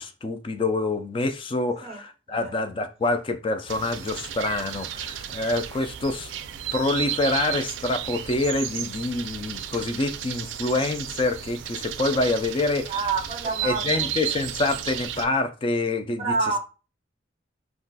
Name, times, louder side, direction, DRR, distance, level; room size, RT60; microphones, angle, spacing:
voice 1, 0.0-6.3 6.7-12.9 13.6-16.6, left 2 dB, 30° left, 0.3 m, -26 dB
sound 1, 3.7-15.2, right 10 dB, 90° right, 0.4 m, -33 dB
voice 2, 12.9-13.8 16.0-16.6, right 4 dB, 35° right, 0.6 m, -27 dB
2.4 x 2.2 x 3.9 m
head